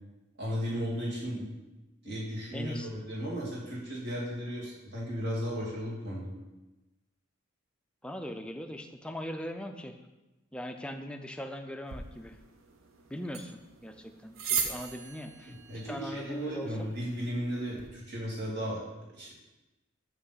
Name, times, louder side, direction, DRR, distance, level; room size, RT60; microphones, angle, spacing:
voice 1, 0.4-1.5 2.0-6.3 15.5-18.8 19.2-19.3, equal, 55° right, -5 dB, 2.0 m, -35 dB
voice 2, 2.5-2.9 8.0-10.0 10.5-12.4 13.1-15.5 15.9-16.9, left 1 dB, 5° left, 6 dB, 0.3 m, -40 dB
sound 1, 11.9-17.9, right 6 dB, 75° right, 0.7 m, -39 dB
5.9 x 3.2 x 5.6 m, 1.1 s
head